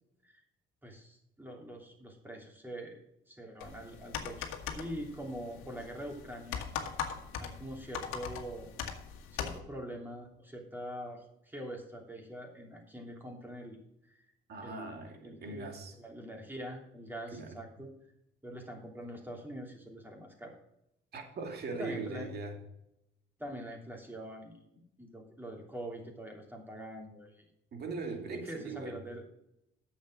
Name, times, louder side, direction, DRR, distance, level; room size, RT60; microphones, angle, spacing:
voice 1, 0.8-3.0 3.3-6.6 7.4-8.7 9.3-13.8 14.6-17.9 18.4-20.6 21.7-22.3 23.4-24.5 25.0-27.5 28.3-29.2, right 1 dB, 10° right, 1 dB, 3.1 m, -44 dB
sound 1, 3.6-9.6, left 7 dB, 85° left, 1.5 m, -40 dB
voice 2, 14.5-15.9 17.3-17.5 21.1-22.6 27.7-29.0, right 3 dB, 55° right, 4 dB, 2.4 m, -40 dB
9.0 x 7.2 x 6.1 m, 0.81 s
cardioid pair, 90°, 20 cm